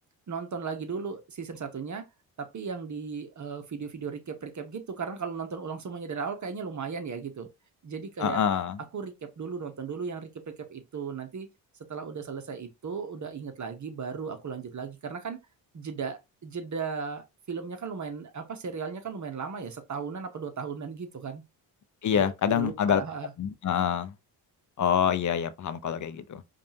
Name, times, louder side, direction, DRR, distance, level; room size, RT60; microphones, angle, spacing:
voice 1, 0.3-2.1 2.4-7.5 7.8-8.4 8.9-11.5 11.9-15.4 15.7-21.4 22.1-23.3, right 5 dB, 40° right, 1.0 m, -36 dB
voice 2, 8.2-8.8 22.0-23.0 23.4-24.1 24.8-26.4, left 8 dB, 40° left, 0.6 m, -26 dB
5.1 x 2.5 x 2.7 m
supercardioid pair, 70°, 46 cm